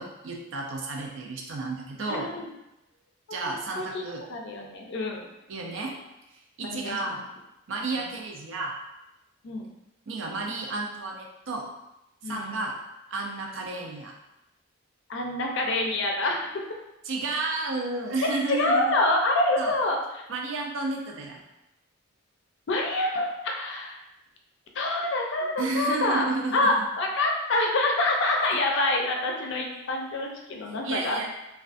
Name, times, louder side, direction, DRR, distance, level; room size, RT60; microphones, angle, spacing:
voice 1, 0.0-2.3 3.3-4.2 5.5-5.9 6.3-7.2 7.7-8.7 10.1-11.7 12.2-12.7 13.1-14.1 17.1-18.8 19.6-19.7 20.3-21.4 25.6-26.8 30.8-31.3, right 3 dB, 70° right, 0 dB, 0.5 m, -32 dB
voice 2, 2.1-2.5 3.5-4.0 4.3-5.3 6.6-7.2 7.9-8.0 9.4-9.7 12.2-12.5 15.1-16.5 18.5-20.2 22.7-24.0 24.7-31.3, left 2 dB, 65° left, 1 dB, 0.4 m, -26 dB
2.4 x 2.3 x 2.4 m, 0.93 s
head